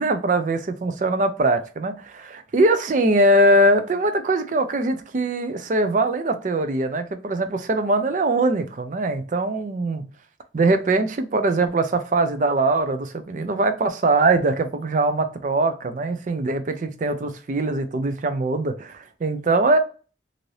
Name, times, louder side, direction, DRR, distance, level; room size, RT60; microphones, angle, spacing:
voice 1, 0.0-10.0 10.5-19.8, right 2 dB, 45° right, 9 dB, 0.4 m, -22 dB
2.6 x 2.6 x 3.1 m, 0.36 s
head